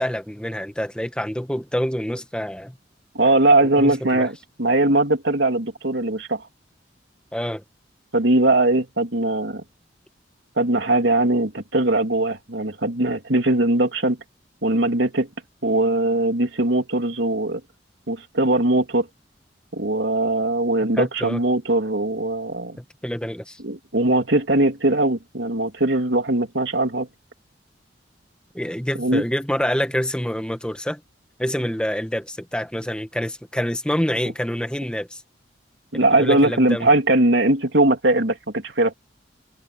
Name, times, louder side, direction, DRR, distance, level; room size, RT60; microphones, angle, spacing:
voice 1, 0.0-2.8 3.6-4.3 7.3-7.6 21.0-21.4 22.8-23.6 28.5-31.0 31.4-35.2 36.2-36.9, equal, 5° left, 1.9 m, -27 dB
voice 2, 3.1-6.5 8.1-9.6 10.6-14.2 14.6-15.3 15.6-17.6 18.1-19.1 19.7-22.8 23.6-27.1 29.0-29.2 35.9-38.9, right 2 dB, 80° right, 3.3 m, -20 dB
head